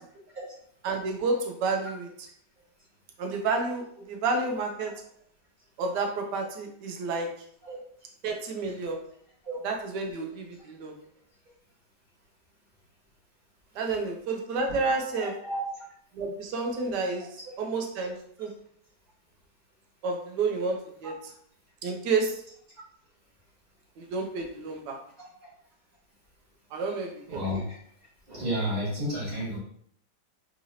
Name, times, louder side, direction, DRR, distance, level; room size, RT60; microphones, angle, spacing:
voice 1, 0.8-2.3 3.2-4.9 5.8-7.3 8.2-9.0 9.6-10.9 13.7-15.3 16.1-17.3 17.6-18.5 20.0-21.1 21.8-22.4 24.0-25.0 26.7-27.4, right 3 dB, 80° right, 3 dB, 1.3 m, -30 dB
voice 2, 15.1-15.6 21.0-21.1 27.3-27.7 28.3-29.6, equal, 35° right, -8 dB, 1.5 m, -31 dB
3.7 x 2.9 x 2.7 m, 0.64 s
omnidirectional pair, 1.8 m